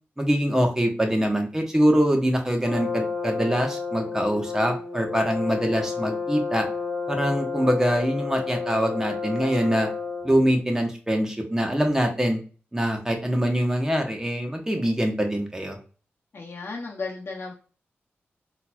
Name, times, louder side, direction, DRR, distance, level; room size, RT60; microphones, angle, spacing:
voice 1, 0.2-6.6 7.1-9.9 10.2-12.4 12.7-15.8, equal, 10° right, 3 dB, 1.1 m, -24 dB
Brass instrument, 2.6-10.4, left 4 dB, 15° left, 1.4 m, -31 dB
voice 2, 16.3-17.5, left 3 dB, 60° left, -2 dB, 0.9 m, -34 dB
3.8 x 3.0 x 2.2 m, 0.38 s
cardioid pair, 70°, 4 cm